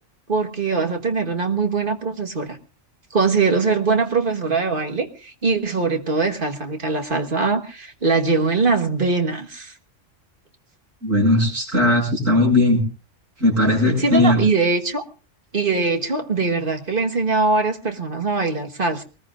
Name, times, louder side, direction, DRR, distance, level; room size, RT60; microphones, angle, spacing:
voice 1, 0.3-2.6 3.1-9.7 14.0-15.0 15.5-19.0, right 4 dB, 45° right, 4 dB, 1.7 m, -22 dB
voice 2, 11.0-12.8 13.4-14.4, left 1 dB, 90° right, -2 dB, 7.5 m, -18 dB
23.0 x 19.5 x 2.5 m, 0.35 s
omnidirectional pair, 1.3 m